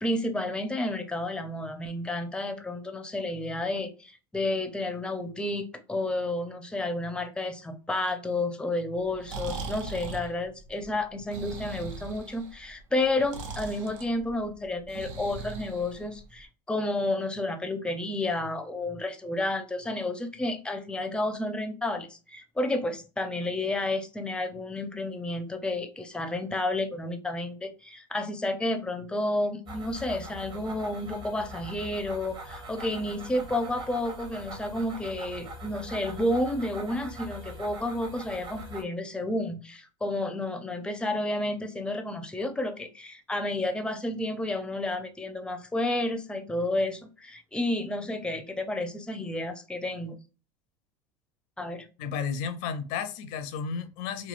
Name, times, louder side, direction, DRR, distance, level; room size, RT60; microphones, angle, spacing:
voice 1, 0.0-50.2 51.6-51.9, left 1 dB, 5° left, 0.4 m, -31 dB
Breathing, 9.0-16.4, right 4 dB, 85° right, 0.6 m, -40 dB
sound 1, 29.7-38.8, right 1 dB, 30° right, 0.8 m, -42 dB
voice 2, 52.0-54.3, left 6 dB, 65° left, 0.5 m, -33 dB
3.1 x 2.3 x 2.4 m
supercardioid pair, 105°, 17 cm